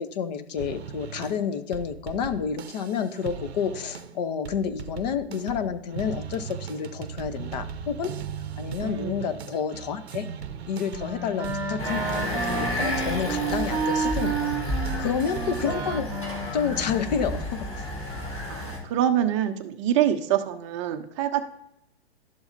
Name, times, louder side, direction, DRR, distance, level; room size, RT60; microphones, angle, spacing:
voice 1, 0.0-8.1 8.6-10.3 10.7-14.5 15.0-16.1 16.5-17.9, left 7 dB, 40° left, 10 dB, 0.7 m, -29 dB
sound 1, 0.6-4.2 4.5-15.8, right 7 dB, 75° right, 0.6 m, -38 dB
voice 2, 8.8-9.3 15.6-15.8 18.5-21.5, right 10 dB, 30° right, 8 dB, 0.6 m, -26 dB
Wind instrument woodwind instrument, 10.4-17.5, right 5 dB, 10° right, 0.9 m, -32 dB
sound 2, 11.8-18.8, left 1 dB, 20° left, 2.9 m, -32 dB
11.5 x 7.1 x 2.6 m, 0.81 s
figure-of-eight pair, 115°, 32 cm